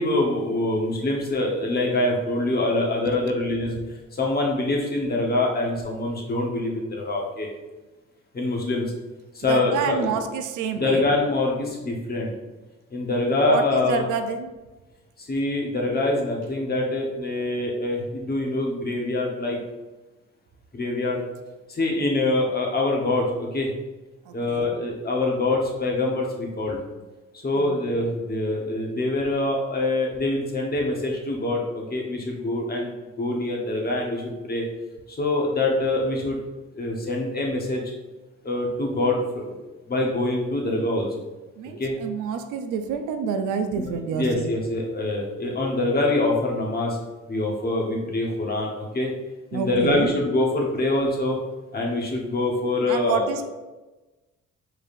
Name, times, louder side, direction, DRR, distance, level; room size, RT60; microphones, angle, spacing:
voice 1, 0.0-3.8 4.1-7.5 8.3-8.8 9.3-10.2 10.7-12.3 12.9-14.1 15.2-19.6 20.7-21.2 21.7-23.7 24.3-26.8 27.4-32.9 33.2-34.6 35.1-36.4 36.7-37.8 38.4-39.5 39.9-41.1 41.8-41.9 43.8-43.9 44.1-47.0 47.3-49.1 49.5-51.4 51.7-53.3, left 2 dB, 30° left, -1 dB, 1.1 m, -25 dB
voice 2, 9.4-11.0 13.5-14.5 24.3-24.8 27.6-27.9 41.6-44.5 49.5-50.1 52.9-53.4, right 6 dB, 85° right, 8 dB, 0.5 m, -28 dB
4.7 x 3.3 x 2.5 m, 1.1 s
cardioid pair, 90°, 30 cm